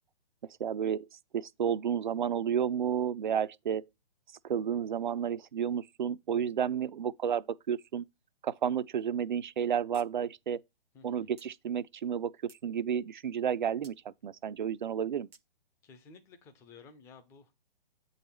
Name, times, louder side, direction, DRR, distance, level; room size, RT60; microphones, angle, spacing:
voice 1, 0.6-1.1 1.3-3.8 4.4-8.0 8.4-10.6 11.0-15.3, right 8 dB, 50° right, 0.5 m, -31 dB
sound 1, 9.9-10.1 10.4-10.5 11.4-11.5 12.1-12.7 13.8-14.0 15.3-15.4, right 4 dB, 80° right, 1.0 m, -57 dB
voice 2, 10.9-11.4 15.8-17.5, left 4 dB, 10° left, 0.6 m, -54 dB
8.3 x 4.0 x 4.3 m
figure-of-eight pair, 125°, 30 cm